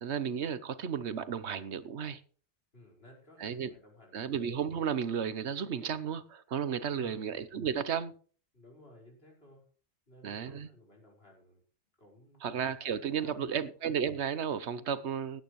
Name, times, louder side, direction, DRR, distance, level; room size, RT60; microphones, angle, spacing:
voice 1, 0.0-2.2 3.4-3.7 4.1-8.1 10.2-10.7 12.4-15.4, right 7 dB, 75° right, 1.2 m, -33 dB
voice 2, 2.7-4.3 6.9-7.3 8.5-9.7 10.1-11.6 12.0-12.5 12.8-13.7, left 1 dB, 60° left, 5.2 m, -56 dB
17.0 x 11.5 x 3.2 m
omnidirectional pair, 1.2 m